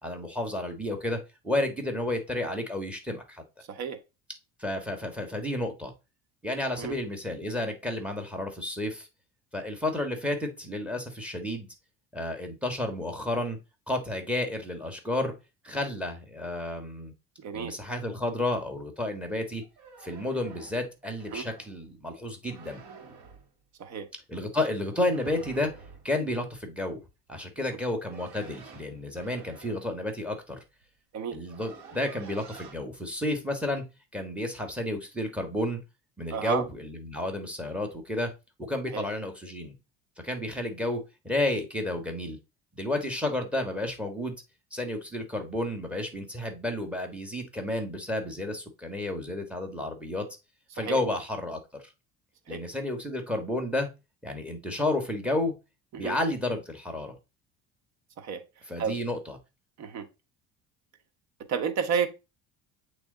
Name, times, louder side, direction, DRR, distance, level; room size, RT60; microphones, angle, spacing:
voice 1, 0.0-1.2 1.4-3.4 4.6-5.9 6.4-9.1 9.5-11.7 12.1-13.6 13.9-15.3 15.6-17.1 17.5-19.6 20.0-22.8 24.3-25.7 26.0-27.0 27.3-30.6 31.3-33.8 34.1-35.8 36.2-38.3 38.6-39.7 40.2-42.4 42.7-44.4 44.7-50.3 50.7-51.8 52.5-53.9 54.2-55.5 55.9-57.1 58.7-59.4, left 1 dB, 5° right, 1.6 m, -31 dB
voice 2, 3.7-4.0 6.8-7.0 17.4-17.7 21.3-21.5 23.8-24.1 31.1-31.4 36.3-36.6 38.9-39.0 50.8-51.0 52.5-52.6 55.9-56.2 58.2-58.4 58.8-58.9 59.8-60.1 61.5-62.1, right 6 dB, 60° right, 1.2 m, -31 dB
sound 1, 19.6-21.8 22.4-23.5 24.9-26.1 27.6-29.9 30.8-30.9 31.2-32.8, right 5 dB, 80° right, 2.0 m, -49 dB
8.2 x 3.2 x 3.9 m
cardioid pair, 110°, 31 cm